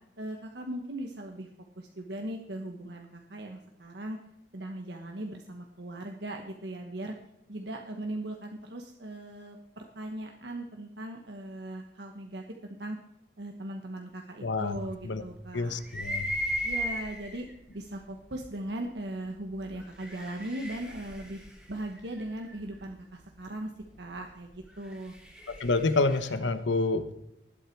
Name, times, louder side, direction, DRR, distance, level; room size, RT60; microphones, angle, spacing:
voice 1, 0.2-1.5 1.8-4.2 4.5-7.1 7.5-12.4 12.8-13.0 13.4-15.8 16.6-17.5 17.7-21.4 21.7-23.7 24.0-25.1, right 1 dB, 70° right, 3 dB, 1.2 m, -39 dB
voice 2, 14.4-14.8 15.0-15.2 15.5-16.3 25.6-27.1, left 3 dB, 85° left, 12 dB, 1.0 m, -27 dB
sound 1, 15.8-17.5 18.3-18.4 19.7-22.6 24.7-26.4, equal, 5° right, 2.3 m, -36 dB
19.5 x 8.1 x 4.6 m, 0.83 s
head